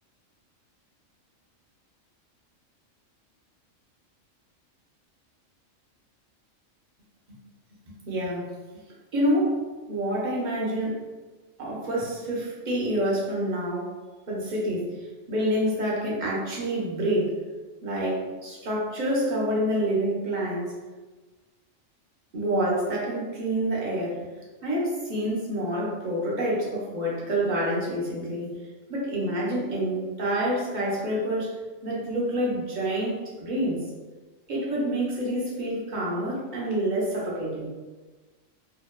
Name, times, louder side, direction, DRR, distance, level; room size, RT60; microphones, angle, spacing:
voice 1, 7.9-8.5 9.1-9.6 9.9-11.0 11.6-14.0 14.3-14.9 15.3-17.4 17.8-20.7 22.3-24.2 24.6-28.5 28.9-33.8 34.5-37.7, right 1 dB, 50° right, -5 dB, 0.6 m, -27 dB
2.8 x 2.1 x 2.2 m, 1.3 s
omnidirectional pair, 1.4 m